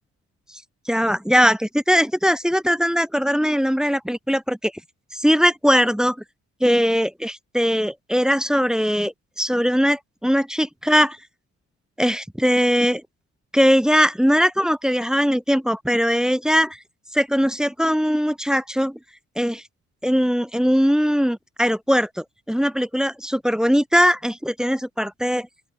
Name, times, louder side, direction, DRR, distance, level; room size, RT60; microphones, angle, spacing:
voice 1, 0.9-4.7 5.1-6.2 6.6-11.2 12.0-13.0 13.5-16.8 17.1-19.0 19.4-19.6 20.0-25.5, equal, ahead, 0.6 m, -20 dB
open air
cardioid pair, 75°, 30 cm